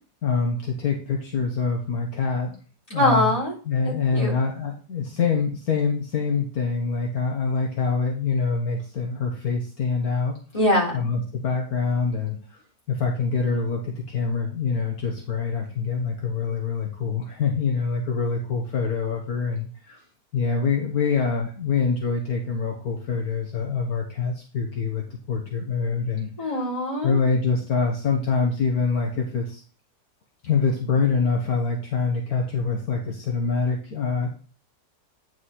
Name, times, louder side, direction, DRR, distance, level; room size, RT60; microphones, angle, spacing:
voice 1, 0.2-2.6 2.9-3.3 3.7-10.4 10.9-12.4 12.9-20.0 20.3-26.6 27.0-29.6 30.4-34.3, left 5 dB, 65° left, 0 dB, 1.7 m, -25 dB
voice 2, 2.9-3.5 3.8-4.3 10.5-11.0 26.4-27.2, left 1 dB, 20° left, -6 dB, 3.9 m, -23 dB
9.4 x 4.8 x 4.2 m, 0.39 s
omnidirectional pair, 1.7 m